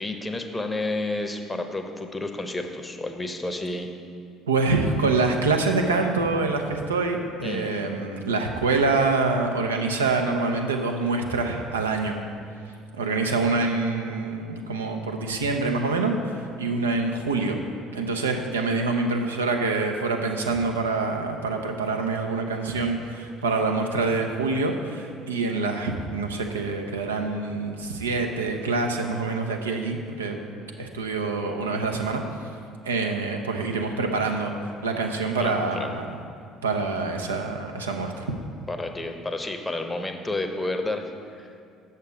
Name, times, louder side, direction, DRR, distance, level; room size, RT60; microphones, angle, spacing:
voice 1, 0.0-3.9 7.4-7.7 35.4-35.5 35.8-35.9 38.7-41.6, left 2 dB, 15° left, 5 dB, 0.8 m, -30 dB
voice 2, 4.5-12.2 13.0-17.6 17.9-32.2 32.8-36.2 36.6-38.3, right 3 dB, 85° right, 3 dB, 0.6 m, -26 dB
7.0 x 6.6 x 5.1 m, 2.3 s
hypercardioid pair, 55°, 0 cm